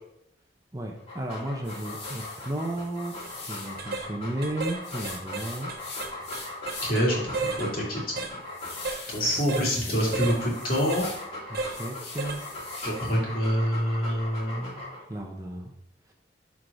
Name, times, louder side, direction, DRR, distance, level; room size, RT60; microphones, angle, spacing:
voice 1, 0.7-3.1 3.4-5.7 9.4-9.5 9.9-10.2 11.5-12.5 15.1-15.7, right 1 dB, 20° right, 1 dB, 0.7 m, -34 dB
Dog, 1.0-9.2 9.8-15.2, left 2 dB, 35° left, 2.3 m, -40 dB
sound 1, 1.6-3.8 4.8-7.1 7.5-7.6 8.1-11.2 11.6-13.1, left 3 dB, 80° left, 2.1 m, -42 dB
sound 2, 3.1-3.3 3.8-4.1 4.4-4.8 5.0-7.1 7.3-7.7 8.2-8.3 8.8-9.0 9.5-9.7 10.1-10.4 10.9-11.0 11.5-11.8 12.2-12.4 12.8-13.0, right 3 dB, 60° right, 1.0 m, -33 dB
voice 2, 6.8-8.4 9.1-11.1 12.8-14.8, equal, 50° left, -4 dB, 2.6 m, -26 dB
6.5 x 4.7 x 4.8 m, 0.75 s
head